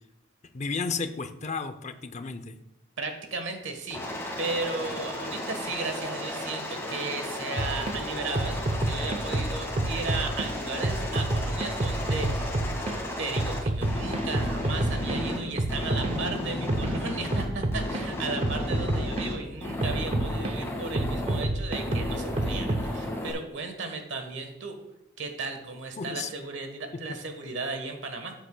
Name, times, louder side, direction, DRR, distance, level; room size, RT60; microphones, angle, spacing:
voice 1, 0.5-2.6 26.0-26.3, left 4 dB, 35° left, 10 dB, 0.6 m, -33 dB
voice 2, 3.0-4.0 4.4-12.6 13.2-24.7 25.2-28.3, right 3 dB, 65° right, 5 dB, 1.3 m, -35 dB
Aircraft, 3.9-15.4 15.7-17.5 17.7-19.3 19.6-21.4 21.7-23.3, left 1 dB, 15° left, 1.8 m, -34 dB
sound 1, 7.6-8.0 8.4-10.5 10.8-13.0 13.4-18.0 18.4-19.3 19.8-20.5 21.0-22.9, right 1 dB, 30° right, 0.5 m, -29 dB
13.5 x 7.9 x 2.2 m, 0.88 s
head